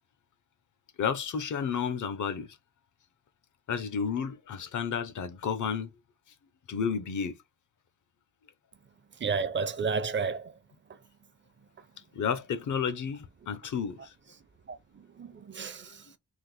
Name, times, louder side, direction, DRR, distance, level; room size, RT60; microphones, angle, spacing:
voice 1, 1.0-2.6 3.7-5.9 6.7-7.4 12.1-14.1, left 7 dB, 70° left, 0.9 m, -31 dB
voice 2, 9.2-10.5 14.7-14.8 15.2-16.0, right 5 dB, 40° right, 0.7 m, -31 dB
3.9 x 2.6 x 3.8 m
cardioid pair, 110°, 31 cm